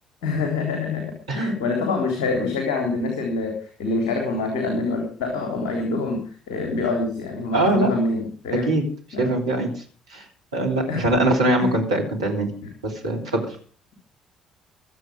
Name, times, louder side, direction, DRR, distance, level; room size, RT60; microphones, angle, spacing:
voice 1, 0.2-8.7 9.1-9.3 10.9-11.1 11.6-11.7, left 3 dB, 65° left, 2 dB, 3.6 m, -26 dB
voice 2, 7.5-7.9 8.5-8.9 9.2-9.8 10.1-10.2 10.5-12.5 12.8-13.6, right 1 dB, 80° right, 0 dB, 3.1 m, -22 dB
23.0 x 8.3 x 5.1 m, 0.40 s
figure-of-eight pair, 45°, 3 cm